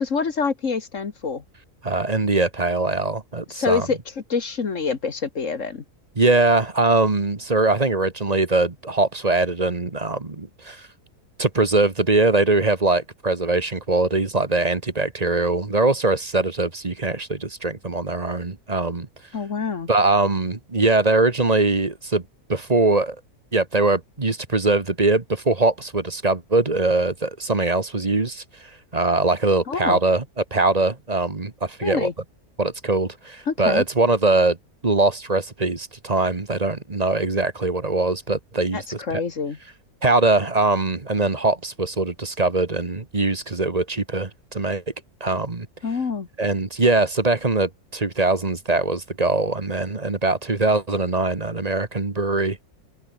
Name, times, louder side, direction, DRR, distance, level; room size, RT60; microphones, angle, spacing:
voice 1, 0.0-1.4 3.5-4.0 4.3-5.8 19.3-19.9 29.7-30.0 31.8-32.1 33.5-33.8 38.7-39.6 45.8-46.3, left 5 dB, 55° left, 1.9 m, -26 dB
voice 2, 1.8-3.9 6.2-10.9 11.4-19.1 19.9-22.2 22.5-23.2 23.5-28.4 28.9-32.1 32.6-34.6 34.8-39.2 40.0-44.8 45.2-45.7 46.4-52.6, right 2 dB, 25° right, 1.6 m, -22 dB
open air
omnidirectional pair, 1.6 m